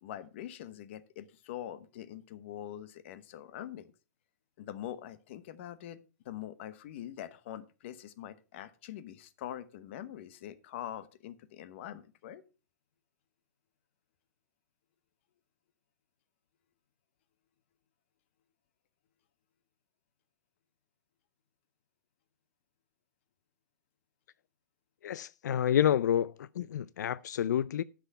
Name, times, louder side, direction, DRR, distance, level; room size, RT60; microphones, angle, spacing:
voice 1, 0.0-3.9 4.6-6.0 6.2-12.4, left 11 dB, 45° left, 0.9 m, -44 dB
voice 2, 25.0-27.8, left 10 dB, 85° left, 0.4 m, -29 dB
9.7 x 6.1 x 5.4 m
hypercardioid pair, 165°, 9 cm